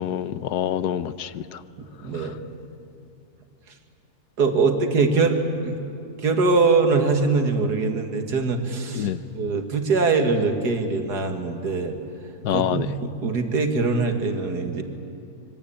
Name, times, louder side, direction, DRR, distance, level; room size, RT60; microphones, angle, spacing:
voice 1, 0.0-1.6 8.9-9.2 12.4-12.9, left 10 dB, 90° left, 14 dB, 1.4 m, -26 dB
voice 2, 1.8-2.4 4.4-5.4 5.6-5.8 6.2-9.1 9.3-12.0 12.5-14.8, right 4 dB, 90° right, 5 dB, 2.5 m, -22 dB
26.0 x 23.5 x 8.8 m, 2.6 s
omnidirectional pair, 1.7 m